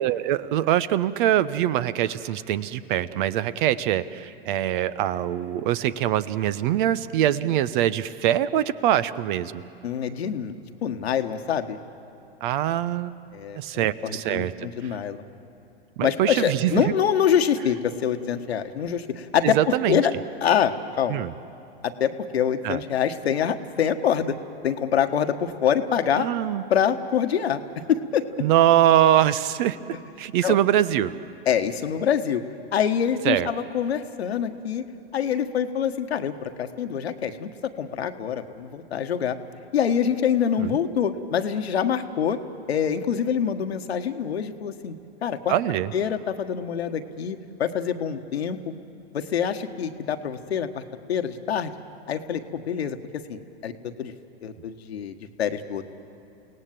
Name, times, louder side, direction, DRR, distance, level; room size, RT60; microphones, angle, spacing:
voice 1, 0.0-9.6 12.4-13.1 13.6-14.5 16.0-16.8 19.4-20.0 21.1-21.3 22.6-22.8 26.2-26.6 28.4-29.8 30.2-31.1 33.2-33.5 40.6-40.8 45.5-45.9, right 12 dB, 55° right, 16 dB, 0.9 m, -23 dB
voice 2, 9.8-10.5 10.8-11.8 13.3-15.2 16.0-20.1 20.4-21.2 21.8-24.4 24.6-26.3 26.7-27.6 27.9-28.3 30.4-30.6 31.4-32.4 32.7-34.8 35.1-39.4 39.7-42.4 42.7-44.9 45.2-45.6 45.9-48.7 49.1-50.8 51.1-51.7 52.1-54.1 54.4-55.8, left 8 dB, 80° left, 7 dB, 1.4 m, -25 dB
30.0 x 18.0 x 7.6 m, 2.8 s
hypercardioid pair, 105°, 31 cm